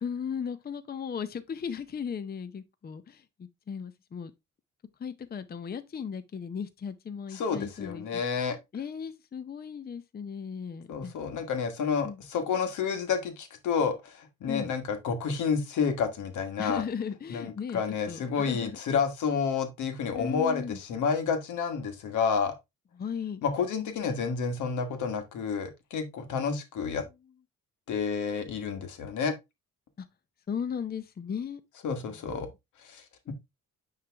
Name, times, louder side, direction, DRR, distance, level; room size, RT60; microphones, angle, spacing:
voice 1, 0.0-4.3 5.0-8.2 8.7-11.1 12.0-12.2 14.5-14.7 16.6-17.8 18.1-18.8 20.2-20.8 23.0-23.4 30.0-30.1 30.5-31.6 32.0-32.5, left 7 dB, 30° left, 0.6 m, -36 dB
voice 2, 7.3-8.6 10.9-16.8 17.3-22.5 23.4-27.0 27.9-29.3 31.8-32.5 32.9-33.0, left 6 dB, 75° left, 1.5 m, -30 dB
9.2 x 3.3 x 3.4 m
cardioid pair, 90°, 30 cm